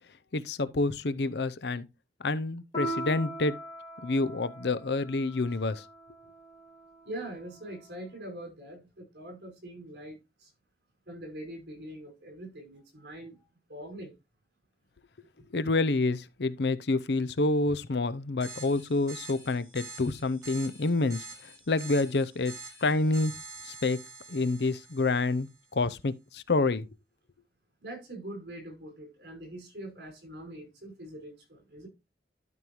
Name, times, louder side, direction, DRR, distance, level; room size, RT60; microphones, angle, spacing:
voice 1, 0.3-1.9 2.2-3.6 4.0-5.8 15.5-22.5 22.8-23.3 23.6-24.0 24.3-26.9, left 3 dB, 70° left, 0.7 m, -28 dB
Piano, 2.7-7.7, right 1 dB, 30° left, 3.1 m, -40 dB
voice 2, 7.0-10.5 11.1-13.4 13.7-14.1 27.8-31.9, right 1 dB, 70° right, 5.6 m, -43 dB
sound 1, 18.4-25.6, right 3 dB, 20° right, 4.2 m, -46 dB
12.0 x 5.4 x 3.1 m
head